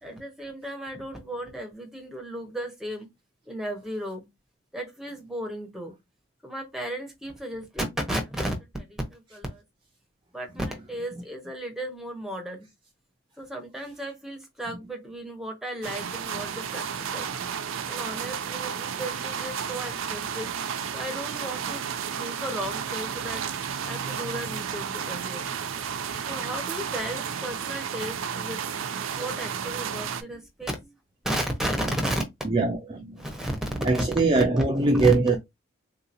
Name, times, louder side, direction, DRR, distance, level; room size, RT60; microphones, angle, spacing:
voice 1, 0.0-3.1 3.5-4.3 4.7-6.0 6.4-9.6 10.3-12.7 13.4-17.3 17.9-20.5 20.9-21.9 22.1-23.4 23.8-25.5 26.3-28.6 29.2-30.9 31.2-32.2 33.2-34.0 34.6-35.1, right 1 dB, ahead, 0.8 m, -34 dB
sound 1, 15.8-30.2, right 7 dB, 85° right, 0.5 m, -32 dB
voice 2, 32.4-33.3 33.9-35.4, right 3 dB, 25° right, 0.4 m, -22 dB
3.8 x 2.8 x 2.5 m
head